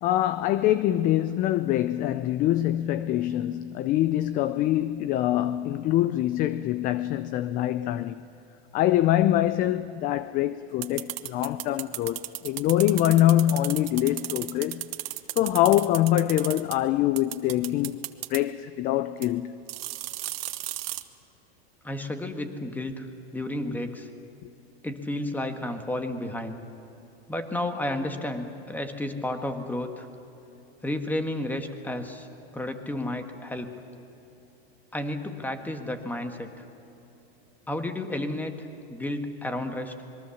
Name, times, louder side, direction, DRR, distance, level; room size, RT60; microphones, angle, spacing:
voice 1, 0.0-8.2 8.7-14.9 15.4-18.0 18.3-19.5 24.4-24.5, left 13 dB, 25° left, 0.5 m, -24 dB
sound 1, 10.8-16.8 17.2-18.4 19.2-19.3 19.7-21.0, right 16 dB, 65° right, 1.3 m, -34 dB
voice 2, 21.8-24.1 24.8-26.6 27.3-30.1 30.8-32.3 32.5-33.8 34.9-36.5 37.7-39.9, left 1 dB, 5° left, 1.6 m, -32 dB
26.0 x 22.0 x 7.2 m
hypercardioid pair, 135°, 33 cm